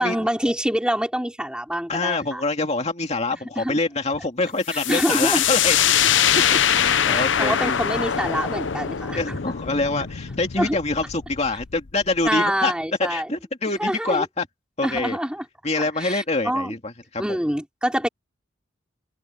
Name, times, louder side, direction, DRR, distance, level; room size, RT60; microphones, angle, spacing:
voice 1, 0.0-2.4 3.3-3.8 4.7-5.4 7.1-9.4 10.6-10.8 12.2-13.3 13.8-14.2 14.8-15.5 16.0-16.7 17.2-18.1, equal, 5° right, 3.9 m, -26 dB
voice 2, 1.9-6.1 6.7-7.8 9.1-12.7 13.0-14.5 14.8-15.2 15.6-17.4, left 3 dB, 35° left, 2.4 m, -25 dB
sound 1, 4.7-12.3, left 9 dB, 80° left, 0.8 m, -23 dB
open air
head